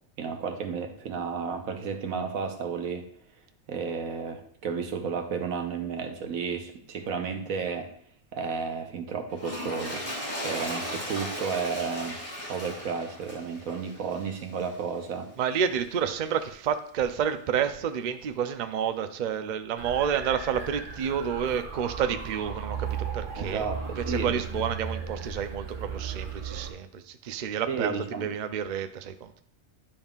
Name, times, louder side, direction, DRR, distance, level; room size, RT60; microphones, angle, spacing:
voice 1, 0.2-3.1 3.7-7.9 8.3-10.1 10.4-12.2 12.5-15.3 23.4-24.4 27.7-28.3, right 5 dB, 90° right, 6 dB, 1.3 m, -32 dB
Toilet flush, 9.3-14.8 15.5-15.6, equal, 25° left, 2.4 m, -37 dB
voice 2, 15.4-29.4, right 8 dB, 60° right, 9 dB, 0.4 m, -30 dB
sound 1, 19.8-26.7, right 5 dB, 40° right, 1.2 m, -36 dB
10.5 x 5.4 x 2.4 m, 0.66 s
omnidirectional pair, 1.4 m